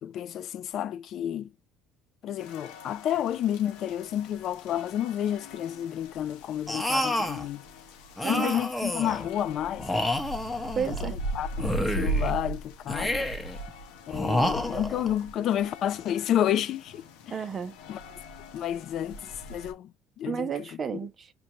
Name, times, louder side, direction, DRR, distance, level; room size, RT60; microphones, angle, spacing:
voice 1, 0.0-1.5 2.2-7.6 8.2-9.9 10.9-13.2 14.1-17.3 17.9-18.0 18.5-19.9 20.2-20.5, left 10 dB, 55° left, 0.3 m, -30 dB
sound 1, 2.4-19.7, right 2 dB, 85° left, 0.8 m, -39 dB
sound 2, 6.7-7.5 8.2-9.3 9.8-11.1 11.6-12.4 12.9-13.6 14.1-15.1, left 1 dB, 5° left, 0.8 m, -29 dB
voice 2, 8.2-8.6 10.8-11.2 17.3-17.7 20.3-21.3, right 7 dB, 35° right, 0.6 m, -32 dB
5.1 x 2.3 x 2.8 m
cardioid pair, 110°, 0 cm